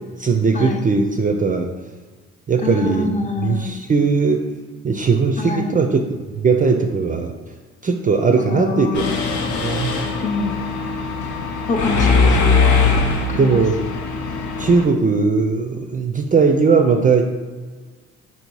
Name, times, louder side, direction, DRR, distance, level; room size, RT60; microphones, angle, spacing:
voice 1, 0.2-1.7 2.5-4.4 4.8-7.3 7.8-9.0 9.3-10.1 13.4-13.8 14.6-17.2, right 4 dB, 25° right, 4 dB, 0.4 m, -18 dB
voice 2, 2.6-3.8 5.4-5.8 8.4-9.3 10.2-10.8 11.7-12.7 13.3-13.6, left 4 dB, 25° left, 3 dB, 0.6 m, -26 dB
Mechanisms, 8.9-14.8, left 4 dB, 70° left, 0.7 m, -20 dB
4.3 x 2.7 x 4.5 m, 1.4 s
cardioid pair, 90°, 30 cm